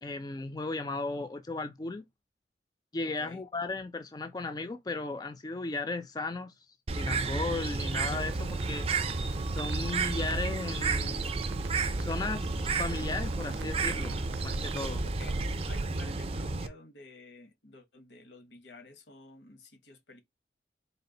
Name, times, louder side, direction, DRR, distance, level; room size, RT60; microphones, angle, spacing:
voice 1, 0.0-2.0 2.9-6.5 7.0-8.9 9.5-11.3 12.0-15.0, left 3 dB, 20° left, 0.4 m, -35 dB
voice 2, 3.0-3.4 15.0-20.2, left 2 dB, 85° left, 1.1 m, -51 dB
Bird, 6.9-16.7, right 3 dB, 35° right, 0.5 m, -32 dB
Crackle, 8.0-15.8, right 2 dB, 90° right, 0.5 m, -41 dB
4.2 x 2.4 x 3.8 m
head